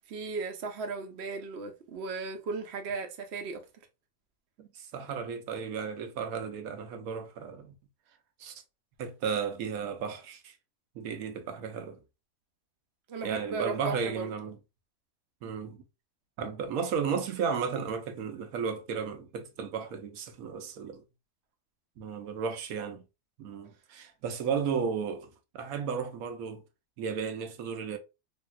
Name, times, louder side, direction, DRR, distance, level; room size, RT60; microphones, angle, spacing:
voice 1, 0.1-3.6 13.1-14.3, right 4 dB, 55° right, 0.9 m, -36 dB
voice 2, 4.6-7.7 8.4-8.6 9.0-10.5 10.9-12.0 13.2-14.6 15.4-15.8 16.4-21.0 22.0-23.0 23.4-26.6 27.0-28.0, right 6 dB, 75° right, 1.1 m, -34 dB
3.4 x 2.9 x 2.2 m
omnidirectional pair, 1.6 m